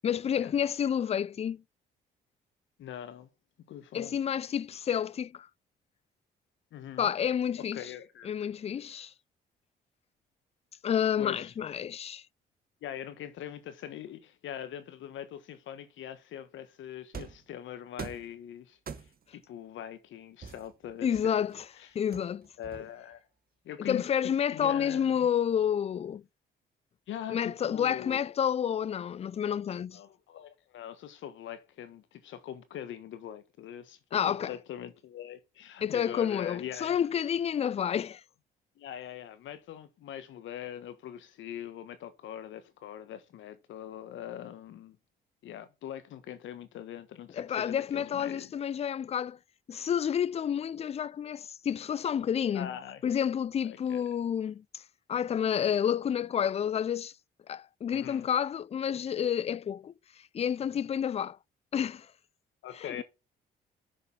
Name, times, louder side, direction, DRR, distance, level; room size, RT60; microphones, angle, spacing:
voice 1, 0.0-1.6 3.9-5.5 7.0-7.9 8.2-9.1 10.8-12.2 21.0-21.7 21.9-22.5 23.8-26.2 27.3-30.0 34.1-34.5 35.8-38.2 47.4-49.4 49.7-52.7 53.0-54.8 55.1-57.1 57.5-59.9 60.3-61.4 61.7-62.1 62.8-63.0, left 8 dB, 30° left, 0.4 m, -29 dB
voice 2, 2.8-3.3 3.7-4.1 6.7-7.1 7.6-8.5 11.2-11.5 12.8-21.5 21.8-21.9 22.6-23.2 23.6-25.3 27.1-28.3 29.9-37.0 38.8-45.0 45.4-48.5 52.5-53.0 53.6-54.0 57.9-58.3 62.6-63.0, left 10 dB, 70° left, 1.4 m, -42 dB
sound 1, 17.1-17.5 18.0-18.3 18.9-19.3 20.4-21.5 22.1-23.1, right 6 dB, 45° right, 1.3 m, -44 dB
6.7 x 5.3 x 5.5 m
supercardioid pair, 60°, 20 cm